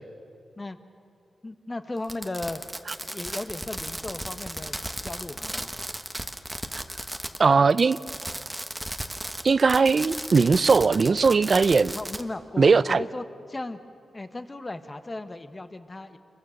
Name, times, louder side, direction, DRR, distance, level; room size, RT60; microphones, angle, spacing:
voice 1, 1.4-2.6 3.1-4.8 5.0-5.7 11.9-13.8 14.1-16.2, left 2 dB, 25° left, 9 dB, 1.3 m, -36 dB
Fireworks, 2.0-7.5 7.7-12.2, right 1 dB, 5° right, 1.3 m, -35 dB
voice 2, 7.4-8.0 9.4-11.9 12.6-13.0, right 4 dB, 50° right, 17 dB, 0.5 m, -19 dB
28.0 x 22.5 x 6.5 m, 2.4 s
wide cardioid pair, 95°, 0 cm